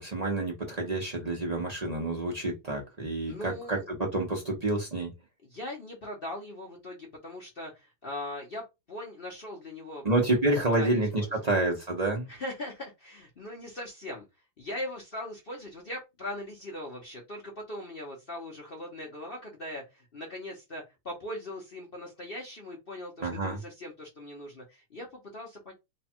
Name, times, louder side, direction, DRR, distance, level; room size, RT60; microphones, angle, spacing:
voice 1, 0.0-5.1 10.0-12.2 23.2-23.6, right 2 dB, 45° right, 0.4 m, -28 dB
voice 2, 3.3-3.9 5.4-10.1 10.7-11.5 12.3-14.2 14.6-25.7, left 1 dB, 50° left, 0.7 m, -40 dB
3.3 x 2.3 x 4.3 m
omnidirectional pair, 2.2 m